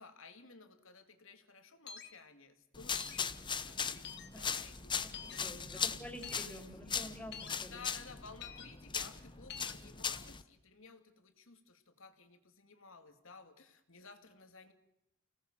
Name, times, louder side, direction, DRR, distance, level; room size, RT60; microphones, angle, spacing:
voice 1, 0.0-5.4 5.7-6.2 7.7-14.7, left 4 dB, 85° left, 7 dB, 2.5 m, -55 dB
sound 1, 1.9-2.1 3.0-3.2 4.0-4.3 5.1-5.4 6.2-6.4 7.3-7.5 8.4-8.7 9.5-9.7, left 7 dB, 55° left, 2.2 m, -46 dB
sound 2, 2.7-10.4, left 6 dB, 25° left, 0.9 m, -39 dB
voice 2, 5.2-7.8, equal, 10° left, 2 dB, 4.6 m, -49 dB
29.5 x 18.0 x 7.5 m, 0.83 s
head